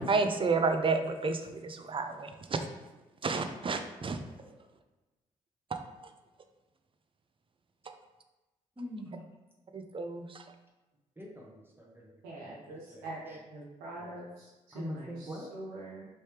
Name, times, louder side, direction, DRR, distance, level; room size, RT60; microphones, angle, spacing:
voice 1, 0.1-2.7 3.2-4.2 5.7-5.8 9.7-10.4, right 4 dB, 35° right, 7 dB, 0.5 m, -31 dB
voice 2, 8.8-9.3 11.2-12.1 12.4-13.4 14.0-14.1 14.7-15.5, equal, 15° right, -2 dB, 0.8 m, -44 dB
voice 3, 12.2-16.1, right 2 dB, 85° right, -5 dB, 0.6 m, -44 dB
3.2 x 2.7 x 3.3 m, 1.1 s
hypercardioid pair, 45°, 16 cm